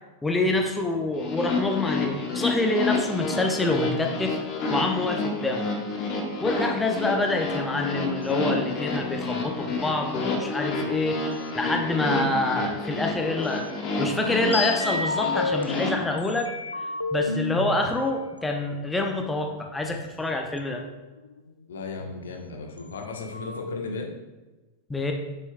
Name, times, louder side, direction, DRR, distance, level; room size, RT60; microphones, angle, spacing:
voice 1, 0.2-4.4 4.7-5.7 6.1-13.7 14.0-16.5 17.1-20.8 24.9-25.1, left 2 dB, 10° left, 3 dB, 0.7 m, -27 dB
sound 1, 1.2-15.9, left 3 dB, 40° left, 1.3 m, -29 dB
sound 2, 7.3-7.8 11.5-12.9 13.7-15.6 16.2-17.8 18.7-20.0 20.6-20.7 20.9-22.2 22.8-22.9 23.1-24.1, left 3 dB, 85° left, 0.3 m, -32 dB
voice 2, 21.7-24.1, left 4 dB, 65° left, 2 dB, 1.1 m, -36 dB
8.9 x 6.2 x 2.2 m, 1.2 s
figure-of-eight pair, 90°, 0 cm